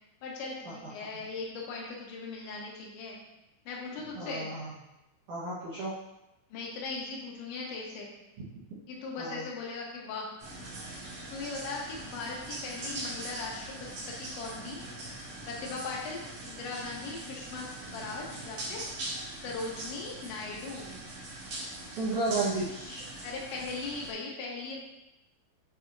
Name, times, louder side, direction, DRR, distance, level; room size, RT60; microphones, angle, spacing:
voice 1, 0.2-3.2 3.7-4.5 6.5-8.1 8.9-10.3 11.3-14.8 15.5-18.8 19.4-21.0 23.2-24.8, left 3 dB, 80° left, -2 dB, 3.4 m, -39 dB
voice 2, 4.2-4.7 5.3-5.9 9.2-9.5 22.0-23.0, right 3 dB, 80° right, -9 dB, 1.8 m, -32 dB
sound 1, 10.4-24.1, right 2 dB, 50° right, 2.1 m, -41 dB
8.0 x 5.6 x 2.6 m, 0.93 s
omnidirectional pair, 5.4 m